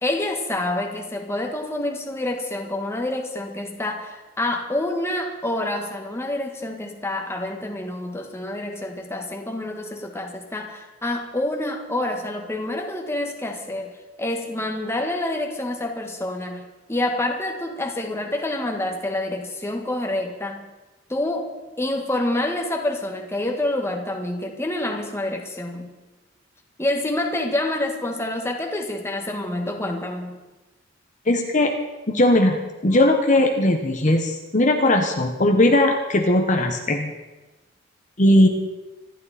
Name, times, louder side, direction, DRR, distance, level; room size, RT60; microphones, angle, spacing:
voice 1, 0.0-13.9 14.2-20.6 21.1-21.5 21.8-25.9 26.8-30.4, left 1 dB, 15° left, 2 dB, 1.8 m, -27 dB
voice 2, 31.3-31.7 32.1-37.1 38.2-38.5, left 1 dB, 40° left, 3 dB, 1.3 m, -18 dB
26.5 x 12.0 x 4.3 m, 1.1 s
head